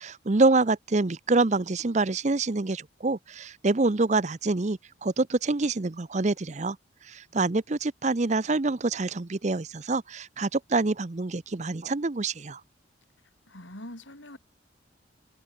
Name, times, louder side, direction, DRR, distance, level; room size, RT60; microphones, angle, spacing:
voice 1, 0.0-6.8 7.0-12.6, right 3 dB, 35° right, 0.6 m, -26 dB
voice 2, 13.5-14.4, left 1 dB, 75° left, 6.4 m, -43 dB
head